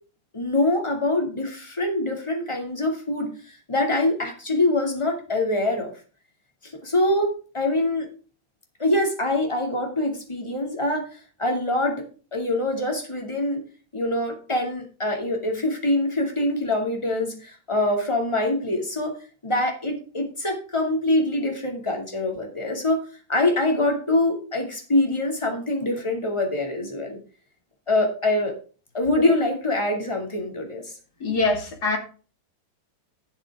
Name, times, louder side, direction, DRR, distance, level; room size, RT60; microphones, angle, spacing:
voice 1, 0.3-5.9 6.6-8.1 8.8-12.1 12.3-13.6 13.9-19.2 19.4-23.0 23.3-27.2 27.9-28.5 28.9-30.9, left 1 dB, 15° left, 2 dB, 2.6 m, -24 dB
voice 2, 31.2-32.0, left 3 dB, 55° left, 2 dB, 3.1 m, -23 dB
12.0 x 8.1 x 3.6 m, 0.37 s
omnidirectional pair, 2.0 m